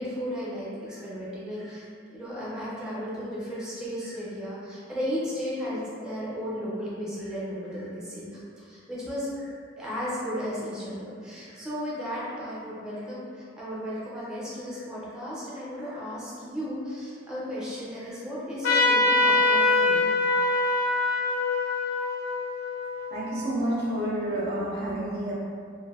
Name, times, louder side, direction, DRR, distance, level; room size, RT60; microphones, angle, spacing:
voice 1, 0.0-1.8 2.1-8.3 8.6-20.0, equal, 5° right, -8 dB, 0.5 m, -34 dB
Trumpet, 18.6-23.7, left 2 dB, 80° left, 0.5 m, -24 dB
voice 2, 23.1-25.3, right 1 dB, 55° right, -5 dB, 0.5 m, -29 dB
2.5 x 2.5 x 2.3 m, 2.3 s
head